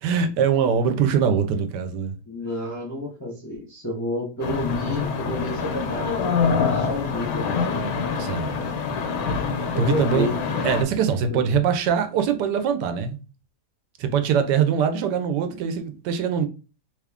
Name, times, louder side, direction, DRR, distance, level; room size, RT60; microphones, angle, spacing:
voice 1, 0.0-2.2 8.2-8.6 9.6-10.3 10.6-13.2 14.0-16.5, right 7 dB, 85° right, 1.2 m, -23 dB
voice 2, 2.3-7.8 9.7-10.6 11.3-11.4, left 1 dB, 20° left, 0.5 m, -30 dB
sound 1, 4.4-10.8, left 5 dB, 90° left, 1.2 m, -25 dB
3.0 x 2.4 x 3.4 m
omnidirectional pair, 1.8 m